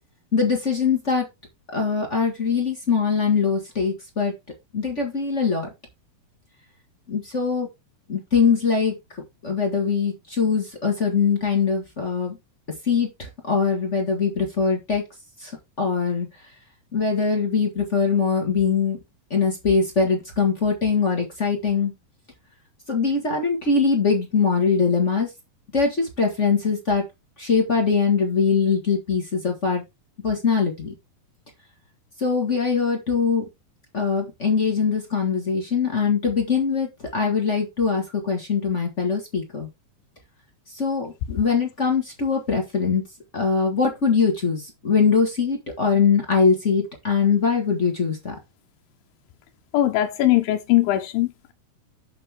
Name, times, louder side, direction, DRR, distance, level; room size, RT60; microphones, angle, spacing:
voice 1, 0.3-1.2 1.7-4.3 4.7-5.7 7.1-7.7 8.1-8.9 9.4-12.4 12.9-15.0 15.4-15.5 15.8-16.3 16.9-19.0 19.3-21.9 22.9-25.3 25.7-27.0 27.4-29.8 30.2-30.9 32.2-33.4 33.9-39.7 40.8-43.0 43.3-48.3, left 5 dB, 45° left, 0.9 m, -22 dB
voice 2, 49.7-51.5, left 14 dB, 90° left, 2.5 m, -20 dB
7.6 x 6.9 x 3.4 m
omnidirectional pair, 4.2 m